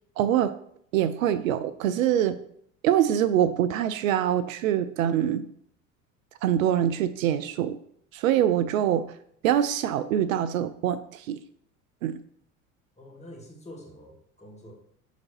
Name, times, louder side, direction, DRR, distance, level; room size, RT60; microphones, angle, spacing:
voice 1, 0.2-0.5 0.9-2.4 2.8-5.4 6.4-7.8 8.1-9.0 9.4-11.4 12.0-12.2, right 10 dB, 70° right, 13 dB, 0.5 m, -24 dB
voice 2, 13.0-14.7, left 1 dB, 15° left, -1 dB, 2.1 m, -46 dB
6.3 x 4.0 x 4.4 m, 0.66 s
figure-of-eight pair, 65°, 42 cm